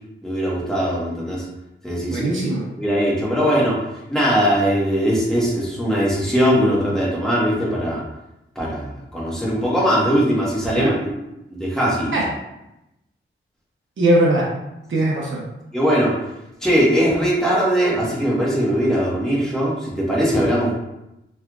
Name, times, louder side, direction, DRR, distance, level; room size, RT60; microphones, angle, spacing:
voice 1, 0.2-1.4 1.8-2.3 2.8-3.8 4.1-8.0 8.5-11.2 11.5-12.2 15.7-16.1 16.6-20.7, equal, 5° left, -7 dB, 1.3 m, -20 dB
voice 2, 2.1-2.6 10.8-10.9 12.1-12.2 14.0-14.5 14.9-15.5, right 1 dB, 65° right, -3 dB, 0.8 m, -19 dB
3.3 x 3.1 x 2.4 m, 0.90 s
wide cardioid pair, 75°, 21 cm